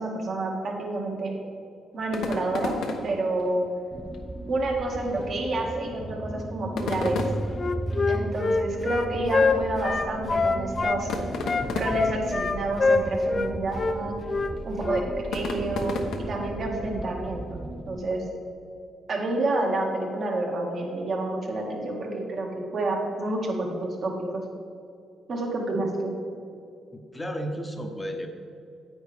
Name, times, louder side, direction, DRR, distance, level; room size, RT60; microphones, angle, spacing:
voice 1, 0.0-1.3 1.9-2.8 3.0-3.6 4.5-7.2 8.1-11.1 11.7-14.1 14.6-16.0 16.3-17.6 17.9-18.2 19.1-24.4 25.3-26.1, right 2 dB, 55° right, 0 dB, 2.0 m, -29 dB
sound 1, 2.0-16.6, left 3 dB, 75° left, 1.0 m, -36 dB
sound 2, 3.9-18.0, right 2 dB, 15° right, 0.5 m, -36 dB
Wind instrument woodwind instrument, 7.5-11.0 11.4-13.5 13.7-13.9 14.3-14.5 14.8-15.0, left 4 dB, 35° left, 0.6 m, -24 dB
voice 2, 26.9-28.3, equal, 15° left, 4 dB, 1.0 m, -33 dB
9.7 x 9.1 x 3.5 m, 2.6 s
cardioid pair, 90°, 0 cm